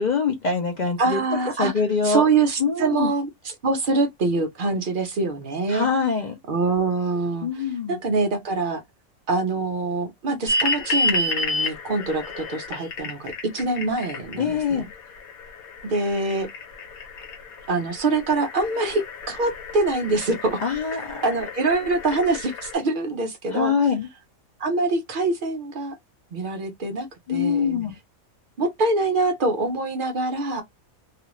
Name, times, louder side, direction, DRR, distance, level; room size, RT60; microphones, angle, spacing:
voice 1, 0.0-1.2 1.6-2.3 2.6-3.1 5.7-6.4 7.4-8.0 14.4-14.9 20.6-21.2 22.1-22.3 23.5-24.1 27.3-28.0, left 5 dB, 55° left, 0.5 m, -24 dB
voice 2, 1.0-1.7 2.0-5.9 6.5-8.8 9.3-14.8 15.8-16.5 17.7-20.6 21.2-23.7 24.6-26.0 26.3-27.7 28.6-30.6, right 3 dB, 65° right, 0.5 m, -24 dB
sound 1, 10.5-22.7, left 2 dB, 85° left, 1.3 m, -31 dB
2.4 x 2.4 x 2.9 m
omnidirectional pair, 1.5 m